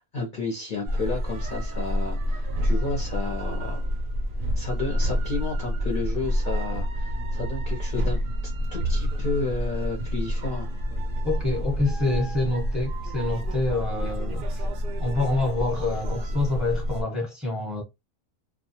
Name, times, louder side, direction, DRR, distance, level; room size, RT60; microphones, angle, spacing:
voice 1, 0.0-3.9 4.5-10.7, left 3 dB, 50° left, 0.6 m, -32 dB
sound 1, 0.8-17.0, equal, 65° right, 0.5 m, -28 dB
voice 2, 11.2-14.7 15.0-17.8, left 2 dB, ahead, 0.8 m, -27 dB
2.2 x 2.2 x 2.7 m
omnidirectional pair, 1.5 m